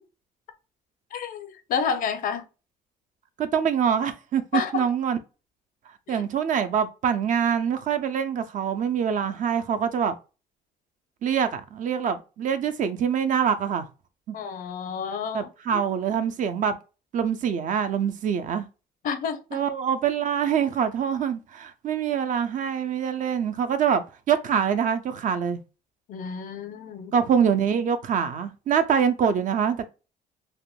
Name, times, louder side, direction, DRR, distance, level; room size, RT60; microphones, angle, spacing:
voice 1, 1.1-2.4 4.5-4.8 6.1-6.2 14.3-15.8 19.0-19.6 26.1-27.1, left 6 dB, 55° left, 0.5 m, -30 dB
voice 2, 3.4-5.2 6.1-10.1 11.2-13.9 14.3-14.4 15.3-16.8 17.1-18.7 19.5-25.6 27.1-30.0, right 7 dB, 50° right, 0.5 m, -25 dB
3.5 x 2.1 x 2.2 m
cardioid pair, 110°, 17 cm